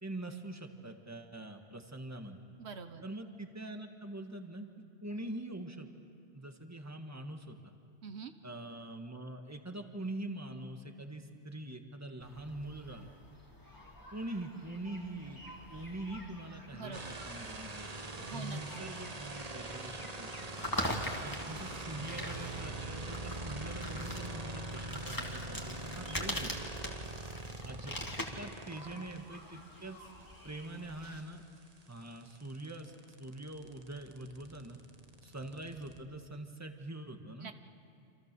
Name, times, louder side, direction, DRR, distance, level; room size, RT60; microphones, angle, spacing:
voice 1, 0.0-2.4 3.0-4.7 5.0-5.9 6.3-7.7 8.4-13.1 14.1-15.4 15.7-17.9 18.2-20.5 21.2-26.7 27.6-28.0 28.4-30.1 30.4-31.4 31.9-32.9 33.2-34.8 35.2-37.5, right 1 dB, 15° right, 5 dB, 1.5 m, -44 dB
voice 2, 2.6-3.0 8.0-8.3 16.7-17.2 18.2-18.9 37.4-37.5, right 5 dB, 75° right, 9 dB, 1.2 m, -45 dB
sound 1, 12.2-31.2, equal, 20° left, 2.3 m, -44 dB
sound 2, 16.9-29.2 31.3-31.4 31.6-36.0, right 2 dB, 35° right, 1.4 m, -43 dB
27.5 x 27.0 x 6.8 m, 2.3 s
omnidirectional pair, 1.1 m